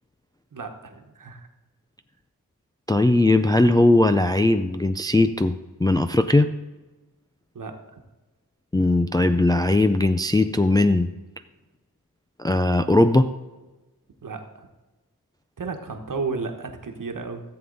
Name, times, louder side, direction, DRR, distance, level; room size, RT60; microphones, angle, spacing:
voice 1, 0.5-1.5 7.5-7.8 14.2-14.7 15.6-17.4, right 4 dB, 55° right, 5 dB, 1.3 m, -33 dB
voice 2, 2.9-5.5 5.8-6.5 8.7-11.1 12.4-13.3, left 2 dB, 10° left, 8 dB, 0.4 m, -19 dB
14.5 x 7.7 x 4.0 m, 1.1 s
wide cardioid pair, 90°, 38 cm